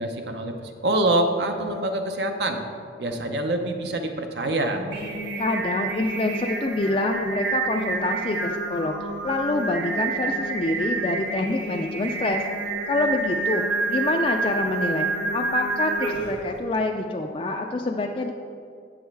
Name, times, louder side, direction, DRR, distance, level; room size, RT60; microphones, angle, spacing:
voice 1, 0.0-2.6 3.0-4.9, right 1 dB, 65° right, 5 dB, 0.8 m, -25 dB
Singing, 4.7-16.4, right 3 dB, 90° right, 1.6 m, -28 dB
voice 2, 5.4-9.0 9.2-12.4 12.9-18.3, left 2 dB, 30° left, 2 dB, 0.4 m, -26 dB
8.8 x 6.3 x 4.7 m, 2.3 s
head